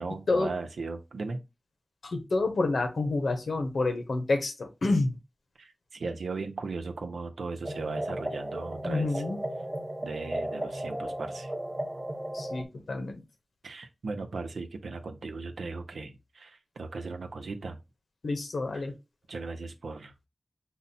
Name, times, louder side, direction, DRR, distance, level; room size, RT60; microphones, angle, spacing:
voice 1, 0.0-1.4 5.6-9.2 10.0-11.5 13.6-17.8 18.7-18.9 19.3-20.1, right 3 dB, 90° right, 0.7 m, -37 dB
voice 2, 2.0-5.2 8.8-9.4 12.3-13.2 18.2-18.9, left 3 dB, 80° left, 1.0 m, -28 dB
sound 1, 7.6-12.6, right 1 dB, 20° right, 0.7 m, -35 dB
5.5 x 2.1 x 4.1 m
cardioid pair, 55°, 0 cm